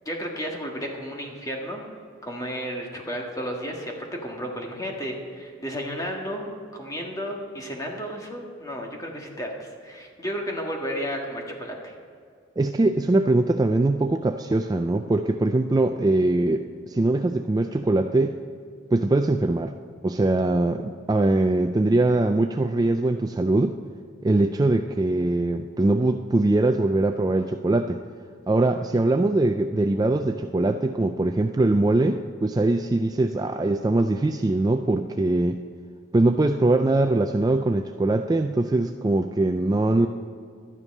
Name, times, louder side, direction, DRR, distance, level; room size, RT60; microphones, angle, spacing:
voice 1, 0.0-1.8 2.2-11.9, equal, 20° left, 0 dB, 1.6 m, -33 dB
voice 2, 12.6-18.4 18.9-19.7 20.0-23.8 24.2-28.0 28.5-35.6 36.1-40.1, right 2 dB, 20° right, 6 dB, 0.3 m, -22 dB
12.5 x 10.0 x 5.3 m, 2.2 s
head